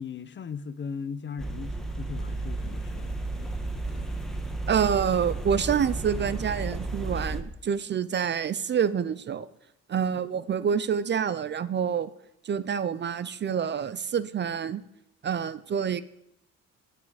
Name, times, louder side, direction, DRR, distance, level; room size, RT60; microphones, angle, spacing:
voice 1, 0.0-3.2, left 6 dB, 40° left, 0.6 m, -38 dB
sound 1, 1.4-7.4, right 2 dB, ahead, 1.2 m, -33 dB
Motorcycle, 2.3-7.4, left 4 dB, 85° left, 1.6 m, -51 dB
voice 2, 4.7-9.5 9.9-12.1 12.4-14.8 15.2-16.0, right 7 dB, 35° right, 0.4 m, -27 dB
9.0 x 8.7 x 4.8 m
cardioid pair, 90°, 30 cm